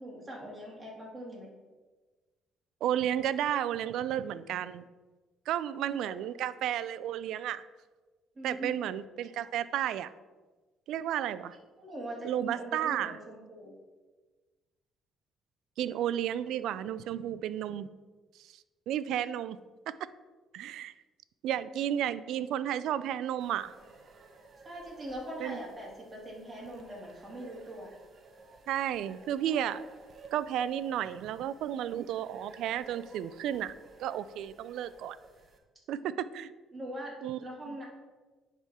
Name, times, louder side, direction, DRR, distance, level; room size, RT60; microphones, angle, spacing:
voice 1, 0.0-1.5 6.1-6.2 8.4-8.8 11.8-13.8 24.6-27.9 36.7-37.8, right 1 dB, 20° right, -3 dB, 2.4 m, -42 dB
voice 2, 2.8-4.8 5.5-7.6 8.4-10.1 10.9-11.6 12.2-13.2 15.8-17.9 18.9-19.6 19.9-20.1 20.5-20.9 21.4-23.7 25.4-25.6 28.7-29.9 30.3-33.7 34.0-35.2 35.9-36.5 37.2-37.4 37.7-37.8, right 10 dB, 80° right, 16 dB, 0.3 m, -32 dB
sound 1, 23.4-35.6, right 3 dB, 45° right, 0.9 m, -55 dB
10.5 x 3.7 x 4.2 m, 1.3 s
cardioid pair, 110°, 0 cm